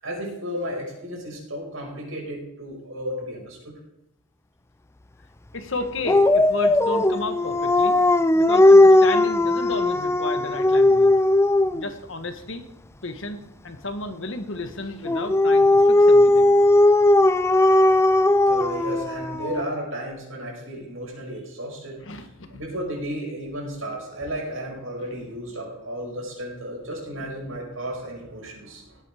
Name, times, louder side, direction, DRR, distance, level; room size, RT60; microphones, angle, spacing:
voice 1, 0.0-3.7 18.5-22.0 22.5-29.0, equal, 90° right, -2 dB, 5.7 m, -33 dB
voice 2, 5.5-8.0 8.3-11.1 11.7-12.6 13.0-16.6 22.0-22.6, left 2 dB, 65° left, 8 dB, 1.4 m, -33 dB
Dog, 6.1-11.9 15.1-19.6, left 2 dB, 15° left, 0.4 m, -17 dB
17.5 x 8.6 x 5.0 m, 0.88 s
head